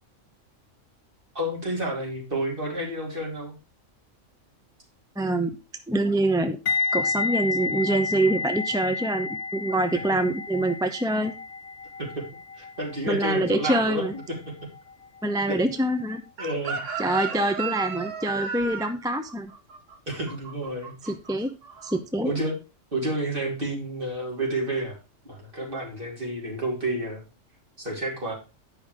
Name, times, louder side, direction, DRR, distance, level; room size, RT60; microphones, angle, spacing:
voice 1, 1.3-3.5 12.0-12.2 12.6-14.2 15.5-15.6 16.4-16.9 20.1-20.9 22.2-22.5 22.9-25.0 25.2-27.2 27.8-28.3, right 1 dB, 45° right, -1 dB, 3.2 m, -30 dB
voice 2, 5.2-5.5 5.9-6.6 6.9-11.3 13.1-14.1 15.2-16.2 17.0-19.5 21.0-21.5 21.8-22.3, right 1 dB, 5° right, 7 dB, 0.6 m, -25 dB
sound 1, 6.7-15.6 15.9-16.2, left 4 dB, 60° left, 1.0 m, -31 dB
Chicken rooster, 16.4-21.3 21.6-22.0, right 6 dB, 75° right, 1.4 m, -34 dB
9.7 x 5.6 x 4.8 m, 0.29 s
omnidirectional pair, 1.3 m